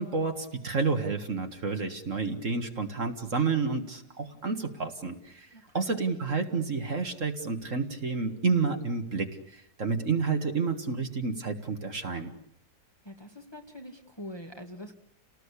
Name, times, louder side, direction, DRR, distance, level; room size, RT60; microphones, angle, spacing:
voice 1, 0.0-5.5 5.7-12.3, right 4 dB, 50° right, 5 dB, 2.1 m, -30 dB
voice 2, 13.0-14.9, equal, 15° left, 3 dB, 2.0 m, -44 dB
30.0 x 19.0 x 8.4 m, 0.77 s
omnidirectional pair, 1.8 m